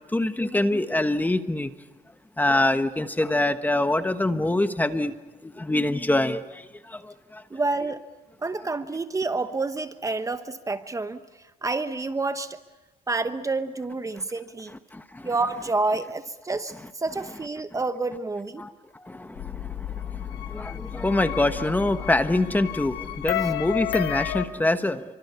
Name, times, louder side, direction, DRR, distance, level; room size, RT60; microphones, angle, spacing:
voice 1, 0.1-1.7 2.4-5.1 5.4-7.4 14.9-15.3 18.6-25.0, left 2 dB, 10° left, 10 dB, 1.2 m, -25 dB
voice 2, 7.5-8.0 8.4-12.6 13.1-14.8 15.2-18.6, right 3 dB, 20° right, 10 dB, 1.1 m, -29 dB
sound 1, 19.4-24.5, left 12 dB, 80° left, 1.5 m, -32 dB
29.0 x 24.5 x 7.0 m, 1.1 s
cardioid pair, 110°, 17 cm